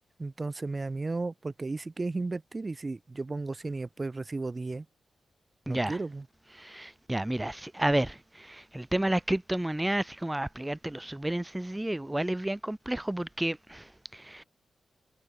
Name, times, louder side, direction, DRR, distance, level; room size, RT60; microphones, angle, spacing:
voice 1, 0.2-4.9 5.7-6.2, right 3 dB, 35° right, 6.4 m, -34 dB
voice 2, 5.7-6.0 6.6-14.4, right 1 dB, 15° right, 5.4 m, -31 dB
supercardioid pair, 45°, 0 cm